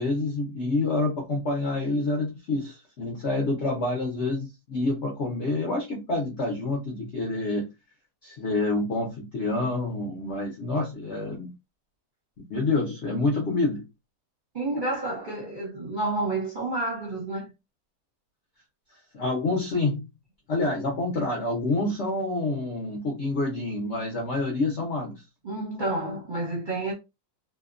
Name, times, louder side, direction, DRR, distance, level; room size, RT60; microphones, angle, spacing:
voice 1, 0.0-7.7 8.2-11.5 12.5-13.9 19.1-20.1 20.5-25.2, left 2 dB, 65° left, 0.7 m, -27 dB
voice 2, 14.5-17.5 25.4-26.9, right 2 dB, 40° right, 0.7 m, -30 dB
2.8 x 2.1 x 2.4 m
omnidirectional pair, 1.9 m